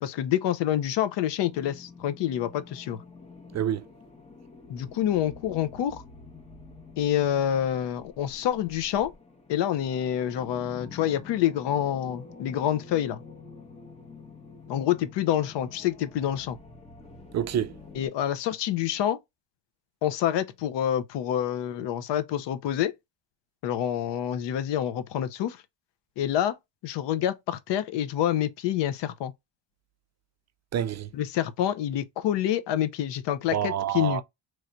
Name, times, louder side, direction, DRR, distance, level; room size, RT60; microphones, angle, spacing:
voice 1, 0.0-3.0 4.7-6.0 7.0-9.1 9.5-13.2 14.7-16.6 17.9-19.2 20.0-22.9 23.6-25.6 26.2-26.5 26.8-29.3 31.1-34.2, left 11 dB, 70° left, 0.7 m, -27 dB
sound 1, 1.4-18.1, left 4 dB, 15° left, 0.7 m, -48 dB
voice 2, 3.5-3.8 17.3-17.7 30.7-31.1 33.5-34.2, right 10 dB, 40° right, 0.4 m, -27 dB
3.2 x 2.5 x 4.3 m
cardioid pair, 125°, 45 cm